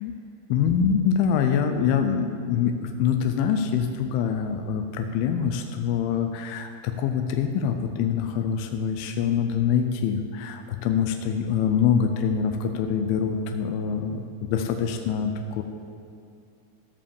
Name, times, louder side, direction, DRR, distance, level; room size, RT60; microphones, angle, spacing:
voice 1, 0.5-15.6, left 7 dB, 80° left, 5 dB, 2.2 m, -25 dB
14.0 x 5.1 x 7.0 m, 2.5 s
omnidirectional pair, 4.7 m